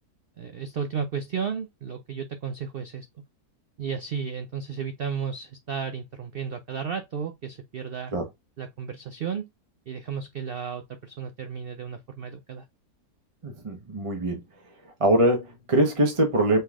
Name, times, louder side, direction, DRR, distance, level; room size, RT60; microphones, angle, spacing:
voice 1, 0.4-3.1 3.8-8.1 8.6-9.5 9.9-12.6, right 6 dB, 75° right, 0.5 m, -33 dB
voice 2, 13.4-14.4 15.0-16.6, right 1 dB, 25° right, 0.8 m, -23 dB
5.4 x 3.8 x 2.4 m
omnidirectional pair, 1.7 m